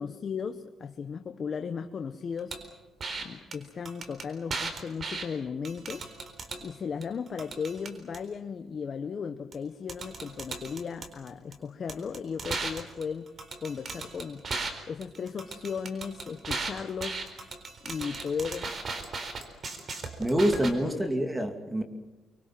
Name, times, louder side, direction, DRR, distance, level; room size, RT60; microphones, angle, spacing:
voice 1, 0.0-2.5 3.2-6.1 6.6-13.3 13.6-14.4 14.9-17.2 17.8-18.7 20.8-21.0, left 6 dB, 50° left, 8 dB, 1.0 m, -36 dB
sound 1, 2.5-2.6 3.0-3.2 3.5-3.6 3.9-5.3 5.7-6.6 7.0-8.2 9.5-9.6 9.9-11.5 11.9-14.7 15.0-20.7, right 4 dB, 45° right, 4.0 m, -36 dB
voice 2, 20.2-21.8, equal, 10° right, 7 dB, 2.6 m, -26 dB
25.0 x 23.0 x 7.5 m, 1.1 s
cardioid pair, 90°, 0 cm